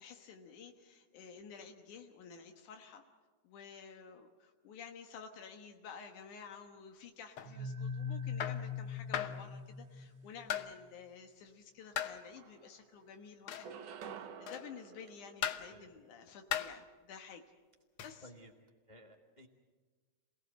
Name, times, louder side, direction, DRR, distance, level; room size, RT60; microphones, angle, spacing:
voice 1, 0.0-3.0 3.4-13.7 14.4-17.4 18.0-18.3, left 6 dB, 85° left, 5 dB, 2.8 m, -52 dB
thin metal plate against wood stone and metal, 7.4-7.6 8.4-8.7 9.1-9.4 10.5-10.8 12.0-12.2 13.5-13.7 14.5-14.8 15.4-15.7 16.5-16.8 18.0-18.2, left 10 dB, 65° left, 1.3 m, -37 dB
sound 1, 7.5-10.3, left 5 dB, 65° right, 0.9 m, -40 dB
sound 2, 11.8-11.9 12.2-13.0 13.5-16.1, right 7 dB, 85° right, 2.8 m, -50 dB
voice 2, 18.2-18.5 18.9-19.5, equal, 25° left, 2 dB, 1.0 m, -56 dB
28.0 x 18.0 x 8.0 m, 1.4 s
omnidirectional pair, 3.5 m